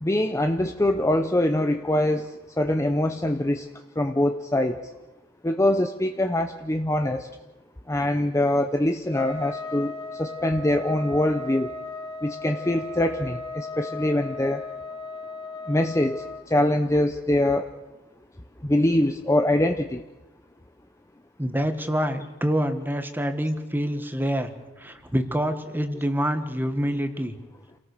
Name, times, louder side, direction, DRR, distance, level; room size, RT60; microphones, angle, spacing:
voice 1, 0.0-2.3 2.6-3.6 4.0-4.8 5.4-7.3 7.9-9.9 10.2-11.7 12.2-14.6 15.7-16.2 16.5-17.7 18.6-20.0, left 1 dB, 15° left, 6 dB, 0.8 m, -23 dB
Trumpet, 9.1-16.4, left 2 dB, 30° left, 3.6 m, -36 dB
voice 2, 21.4-24.5 24.8-27.4, equal, 10° right, 8 dB, 1.6 m, -26 dB
28.5 x 18.5 x 6.7 m, 1.1 s
head